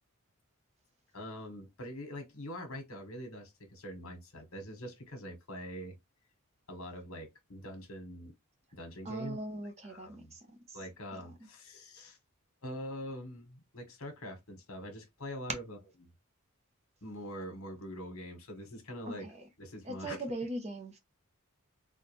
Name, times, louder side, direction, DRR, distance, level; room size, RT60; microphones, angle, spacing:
voice 1, 1.1-5.9 6.7-8.3 8.7-9.4 9.8-10.3 10.7-12.2 12.6-15.8 17.0-19.3 19.6-20.2, equal, 70° left, 1.5 m, -44 dB
voice 2, 9.0-10.4 10.7-10.8 11.1-11.2 19.1-19.3 19.8-21.0, right 1 dB, 30° right, 0.7 m, -40 dB
4.2 x 2.4 x 3.1 m
head